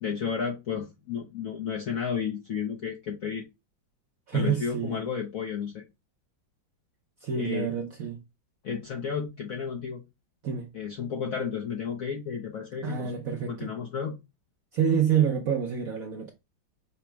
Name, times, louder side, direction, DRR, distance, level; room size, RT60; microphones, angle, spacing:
voice 1, 0.0-3.4 4.3-5.8 7.3-7.7 8.6-10.0 10.7-13.2 13.5-14.2, left 7 dB, 70° left, 0.8 m, -32 dB
voice 2, 4.3-5.0 7.2-8.2 10.4-10.7 12.8-13.7 14.7-16.3, right 7 dB, 70° right, 0.8 m, -27 dB
5.8 x 2.0 x 4.5 m
omnidirectional pair, 2.2 m